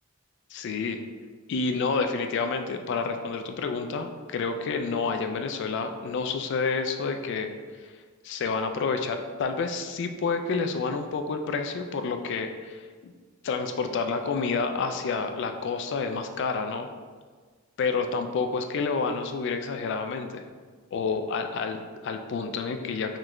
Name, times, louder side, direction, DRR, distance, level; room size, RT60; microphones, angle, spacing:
voice 1, 0.5-1.0 1.5-7.5 7.8-7.9 8.2-13.1 13.4-16.9 17.8-20.4 20.9-23.2, left 4 dB, 60° left, 6 dB, 0.3 m, -29 dB
3.7 x 3.2 x 3.0 m, 1.5 s
head